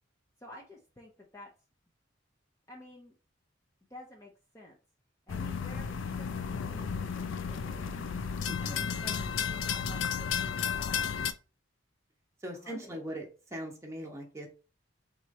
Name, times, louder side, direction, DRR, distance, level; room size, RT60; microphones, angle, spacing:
voice 1, 0.4-1.5 2.7-3.1 3.9-4.8 5.3-8.2 8.6-11.1 12.5-13.2, left 1 dB, 15° left, -1 dB, 0.7 m, -51 dB
sound 1, 5.3-11.3, left 6 dB, 70° left, 0.4 m, -33 dB
voice 2, 8.5-8.8 12.4-13.2 13.5-14.5, equal, 15° right, 0 dB, 1.1 m, -40 dB
3.6 x 3.2 x 4.1 m, 0.34 s
head